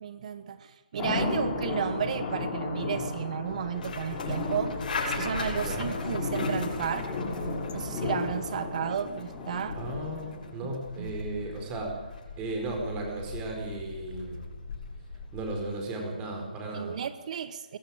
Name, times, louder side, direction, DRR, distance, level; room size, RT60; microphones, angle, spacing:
voice 1, 0.0-4.8 5.1-7.1 7.7-9.8 10.6-11.1 16.7-17.8, right 8 dB, 45° right, 1.2 m, -33 dB
sound 1, 1.0-11.0 13.3-13.4, left 3 dB, 20° left, 5.2 m, -34 dB
sound 2, 3.5-15.7, left 3 dB, 60° left, 7.6 m, -40 dB
voice 2, 5.5-6.0 9.7-12.0 12.4-14.5 15.3-17.0, right 2 dB, 20° right, 4.7 m, -35 dB
22.0 x 15.0 x 8.9 m
hypercardioid pair, 155°, 5 cm